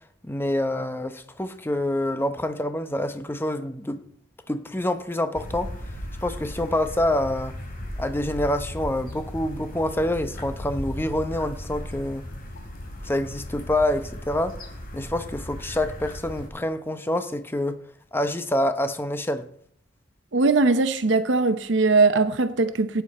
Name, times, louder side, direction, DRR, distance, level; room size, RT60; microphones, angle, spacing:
voice 1, 0.2-4.0 4.5-5.7 6.2-7.6 8.0-12.3 13.0-14.6 14.9-17.8 18.1-19.5, left 1 dB, 10° left, 0.8 m, -26 dB
sound 1, 5.3-16.5, equal, 50° left, 3.4 m, -36 dB
voice 2, 20.3-23.0, right 3 dB, 70° right, 0.8 m, -20 dB
17.5 x 9.3 x 4.2 m
head